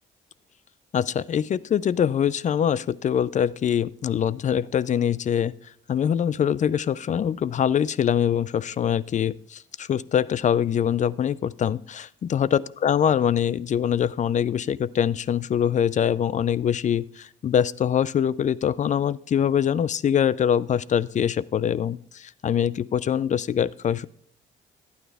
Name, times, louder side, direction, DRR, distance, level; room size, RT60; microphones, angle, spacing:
voice 1, 0.9-5.5 5.9-24.1, left 9 dB, 40° left, 21 dB, 0.4 m, -24 dB
12.0 x 9.4 x 3.4 m, 0.62 s
cardioid pair, 90°, 20 cm